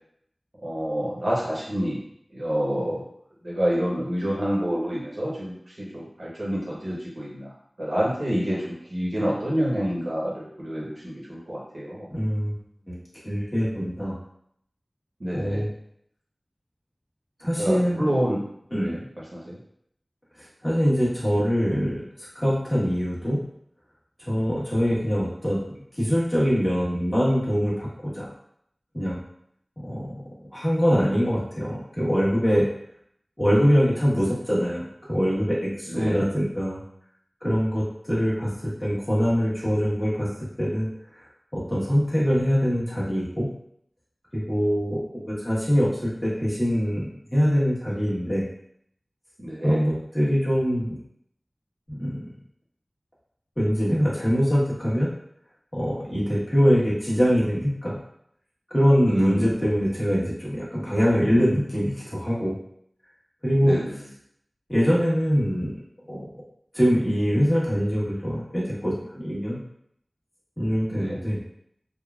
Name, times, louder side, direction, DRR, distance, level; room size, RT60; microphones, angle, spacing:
voice 1, 0.6-2.0 2.3-3.0 3.4-12.1 15.2-15.7 17.6-18.4 18.8-19.0 19.3-19.6 35.9-36.2 49.4-49.8 59.1-59.5 63.6-63.9 70.9-71.2, equal, 75° right, -6 dB, 1.0 m, -28 dB
voice 2, 12.1-12.5 12.9-13.0 13.2-14.2 15.3-15.7 17.4-18.1 18.7-19.0 20.6-23.4 24.2-25.6 26.0-28.3 28.9-29.2 29.8-30.1 30.5-32.7 33.4-36.8 37.4-40.9 41.5-43.5 44.3-48.4 49.6-51.0 51.9-52.3 53.6-55.1 55.7-58.0 58.7-62.6 63.4-63.8 64.7-65.7 66.1-66.3 66.7-69.6 70.6-71.4, equal, 20° left, -7 dB, 1.2 m, -23 dB
3.6 x 2.1 x 2.4 m, 0.70 s
wide cardioid pair, 45°, 0 cm